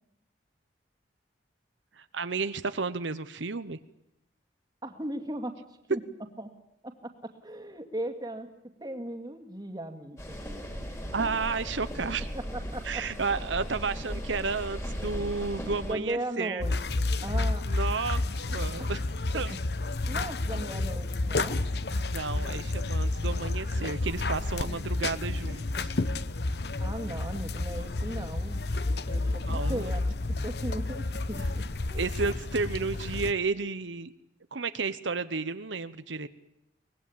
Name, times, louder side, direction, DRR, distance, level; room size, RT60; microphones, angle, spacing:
voice 1, 2.0-3.8 11.1-12.3 12.8-16.6 17.6-18.2 18.5-19.0 19.3-19.5 22.1-25.9 29.4-29.9 31.9-34.1 34.5-36.3, right 4 dB, 85° right, 12 dB, 1.0 m, -32 dB
voice 2, 4.8-5.5 5.9-6.0 6.4-6.5 6.8-8.5 8.8-10.4 12.3-13.0 15.9-16.7 17.2-17.6 18.8-18.9 19.3-19.6 20.1-21.7 26.8-28.6 29.1-32.1, right 1 dB, 20° right, 6 dB, 2.3 m, -37 dB
sound 1, 10.2-15.9, equal, 15° left, 4.3 m, -37 dB
sound 2, 16.6-33.3, left 2 dB, 60° left, 1.0 m, -30 dB
23.5 x 20.0 x 8.7 m, 0.81 s
head